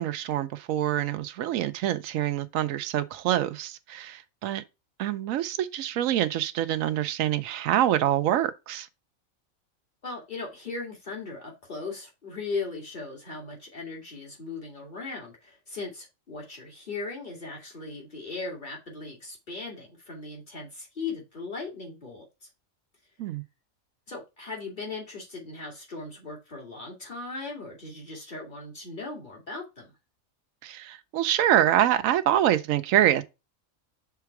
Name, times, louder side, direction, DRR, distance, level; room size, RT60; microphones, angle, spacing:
voice 1, 0.0-4.6 5.0-8.9 23.2-23.4 30.6-33.2, right 11 dB, 75° right, 1.0 m, -25 dB
voice 2, 10.0-22.2 24.1-29.9, left 3 dB, 35° left, 2.2 m, -38 dB
5.9 x 3.8 x 4.7 m
omnidirectional pair, 1.4 m